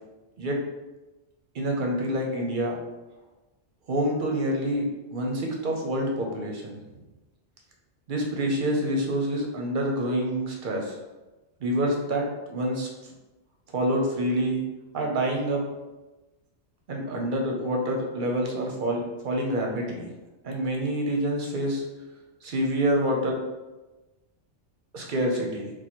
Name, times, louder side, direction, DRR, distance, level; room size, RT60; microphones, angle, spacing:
voice 1, 1.5-2.7 3.9-4.8 5.1-6.8 8.1-10.9 11.6-12.9 13.7-14.6 14.9-15.6 16.9-20.1 20.4-21.8 22.4-23.3 24.9-25.7, right 1 dB, 55° right, 0 dB, 0.7 m, -27 dB
2.9 x 2.2 x 4.2 m, 1.1 s
omnidirectional pair, 1.2 m